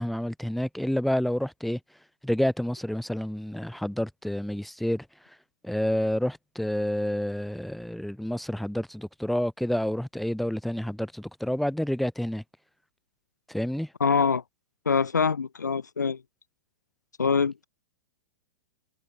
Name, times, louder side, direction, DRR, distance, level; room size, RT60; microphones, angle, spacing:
voice 1, 0.0-1.8 2.2-5.1 5.6-12.4 13.5-13.9, equal, ahead, 2.1 m, -29 dB
voice 2, 14.0-14.4 14.8-16.2 17.2-17.7, left 5 dB, 85° left, 1.3 m, -24 dB
hypercardioid pair, 110°, 9 cm